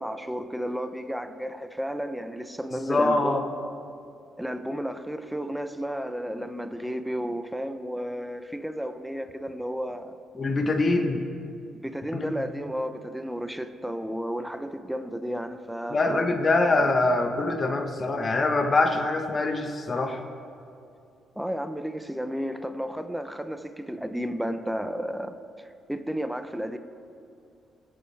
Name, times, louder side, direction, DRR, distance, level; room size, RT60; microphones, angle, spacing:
voice 1, 0.0-3.4 4.4-10.1 11.8-16.2 21.4-25.4 25.9-26.8, equal, 5° right, 8 dB, 0.7 m, -32 dB
voice 2, 2.9-3.4 10.3-11.2 12.1-12.3 15.9-20.2, left 2 dB, 30° left, 4 dB, 1.2 m, -24 dB
21.5 x 8.1 x 3.4 m, 2.5 s
cardioid pair, 90°, 0 cm